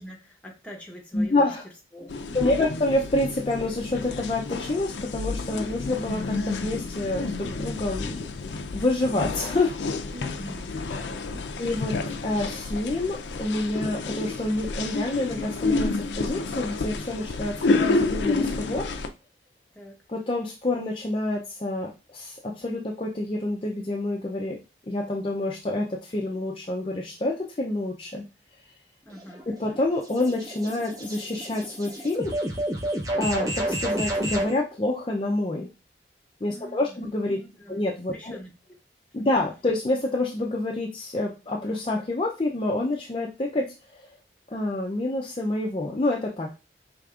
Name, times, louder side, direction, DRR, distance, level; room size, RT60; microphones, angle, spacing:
voice 1, 0.0-1.5 1.9-2.5 10.1-11.6 19.7-20.0 29.1-29.5 36.5-37.1 37.3-37.8 38.1-38.7 39.2-39.3, equal, 10° left, 0 dB, 0.9 m, -44 dB
voice 2, 1.1-1.7 2.3-8.2 8.7-9.8 11.6-11.9 12.2-18.9 20.1-24.6 24.9-28.2 29.5-32.3 33.2-35.7 36.4-37.4 37.7-38.4 39.1-43.7 43.9-44.1 44.5-46.5, left 2 dB, 30° left, -1 dB, 0.4 m, -27 dB
sound 1, 2.1-19.1, left 3 dB, 85° left, 0.5 m, -30 dB
sound 2, 29.1-34.5, right 1 dB, 20° right, 0.6 m, -30 dB
5.0 x 3.3 x 2.4 m, 0.29 s
head